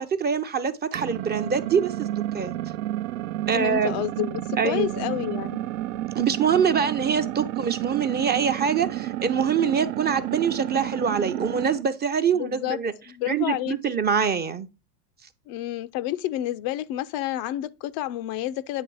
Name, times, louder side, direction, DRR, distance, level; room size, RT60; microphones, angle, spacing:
voice 1, 0.0-2.1 2.3-2.5 3.5-4.0 4.6-5.0 6.1-12.9 13.3-14.7, right 7 dB, 25° right, 0.5 m, -24 dB
sound 1, 0.9-11.8, right 14 dB, 70° right, 0.6 m, -31 dB
voice 2, 3.5-5.6 12.3-12.8 13.1-13.8 15.5-18.8, left 13 dB, 50° left, 0.4 m, -29 dB
9.0 x 3.3 x 4.6 m
supercardioid pair, 100°, 44 cm